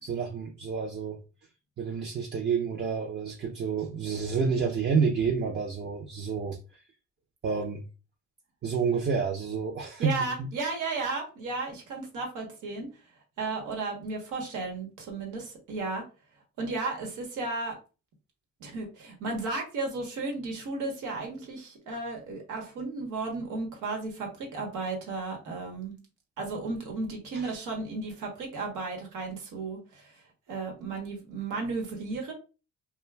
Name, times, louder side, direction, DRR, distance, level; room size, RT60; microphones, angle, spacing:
voice 1, 0.0-1.2 1.8-6.6 7.4-7.8 8.6-10.5 27.3-27.5, right 5 dB, 35° right, 2 dB, 0.5 m, -29 dB
voice 2, 10.0-12.9 13.4-16.0 16.6-17.7 18.6-26.0 26.4-30.1 30.5-32.3, right 3 dB, 90° right, 1 dB, 1.1 m, -34 dB
2.4 x 2.2 x 3.2 m, 0.32 s
cardioid pair, 90°, 30 cm